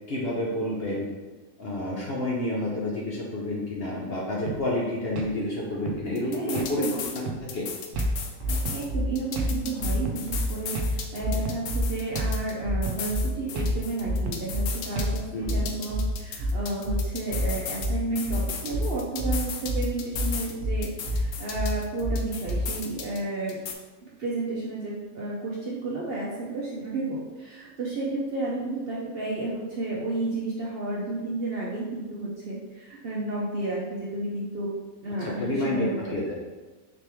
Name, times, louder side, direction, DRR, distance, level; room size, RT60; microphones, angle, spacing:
voice 1, 0.1-1.1 1.6-6.8 7.1-7.2 7.5-7.7 15.3-15.5 35.2-36.3, left 1 dB, 55° left, -4 dB, 0.7 m, -29 dB
sound 1, 4.5-4.7 5.2-5.3 5.9-6.0 6.6-6.7 7.3-7.5 8.0-8.1 8.7-8.8 9.4-9.6 10.1-10.2 10.8-10.9 11.5-11.6 12.2-12.4 12.9-13.1 13.6-13.7 14.3-14.5 15.0-15.2, right 5 dB, 85° right, 1.1 m, -34 dB
sound 2, 6.2-7.2 7.5-8.9 9.2-12.5 12.8-15.2 15.5-17.9 18.2-20.5 20.8-23.2 23.5-23.7, left 7 dB, 80° left, 1.1 m, -36 dB
voice 2, 6.2-6.9 8.5-15.2 15.5-23.6 24.2-34.7 35.0-36.1, right 2 dB, 55° right, -5 dB, 0.7 m, -32 dB
sound 3, 7.9-22.7, equal, 20° right, 0.8 m, -27 dB
4.1 x 3.4 x 3.0 m, 1.2 s
omnidirectional pair, 1.6 m